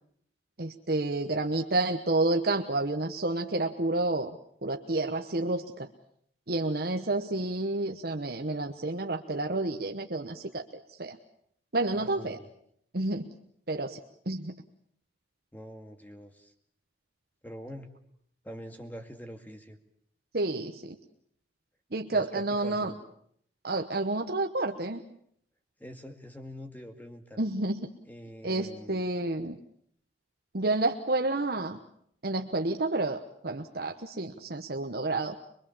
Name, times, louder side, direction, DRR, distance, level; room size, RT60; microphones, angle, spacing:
voice 1, 0.6-4.4 4.6-5.9 6.5-10.6 11.0-11.2 11.7-12.4 12.9-13.3 13.7-14.0 14.3-14.6 20.3-21.0 21.9-22.9 23.6-25.0 27.4-27.9 28.4-29.6 30.5-31.8 32.2-35.4, right 2 dB, 55° right, 4 dB, 1.1 m, -30 dB
voice 2, 11.9-12.5 15.5-16.5 17.4-17.9 18.4-19.8 22.1-23.0 25.8-27.4 28.1-29.0, equal, 10° left, 5 dB, 2.2 m, -44 dB
23.5 x 23.5 x 7.3 m, 0.67 s
head